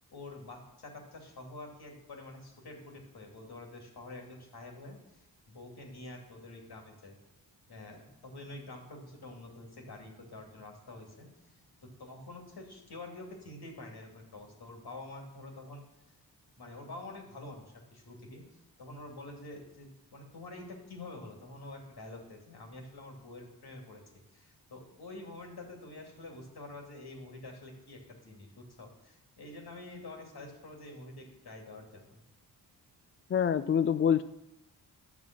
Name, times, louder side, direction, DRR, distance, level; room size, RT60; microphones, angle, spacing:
voice 1, 0.1-7.2 7.7-15.8 16.6-24.0 24.3-32.2, left 2 dB, 65° left, 1 dB, 2.7 m, -47 dB
voice 2, 33.3-34.2, left 8 dB, 30° left, 13 dB, 0.4 m, -26 dB
9.8 x 7.0 x 6.1 m, 0.89 s
cardioid pair, 50°, 41 cm